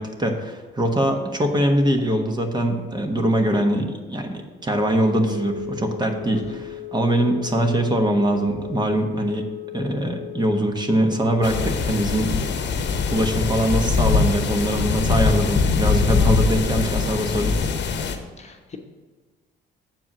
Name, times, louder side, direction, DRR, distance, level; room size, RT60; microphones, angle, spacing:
voice 1, 0.0-9.4 9.7-12.3 13.1-17.6, right 1 dB, 20° right, 4 dB, 1.2 m, -22 dB
Wind instrument woodwind instrument, 4.7-11.8, left 10 dB, 20° left, 1.4 m, -36 dB
sound 1, 11.4-18.2, left 5 dB, 65° left, 1.0 m, -22 dB
voice 2, 18.4-18.8, left 4 dB, 35° left, 3 dB, 1.0 m, -40 dB
7.5 x 4.8 x 7.2 m, 1.4 s
cardioid pair, 90°, 20 cm